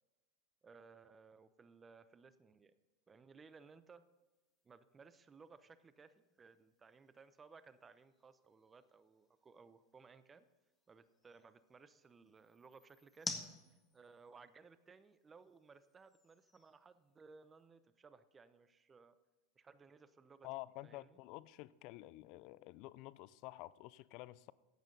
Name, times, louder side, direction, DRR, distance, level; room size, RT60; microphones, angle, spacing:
voice 1, 0.6-2.7 3.1-4.1 4.6-10.4 10.9-13.4 13.9-19.2 19.6-21.2, right 4 dB, 20° right, 0.8 m, -61 dB
sound 1, 3.5-17.7, left 3 dB, 15° left, 1.5 m, -55 dB
voice 2, 20.4-24.5, left 18 dB, 55° left, 0.4 m, -50 dB
14.5 x 8.9 x 4.0 m
hypercardioid pair, 100°, 0 cm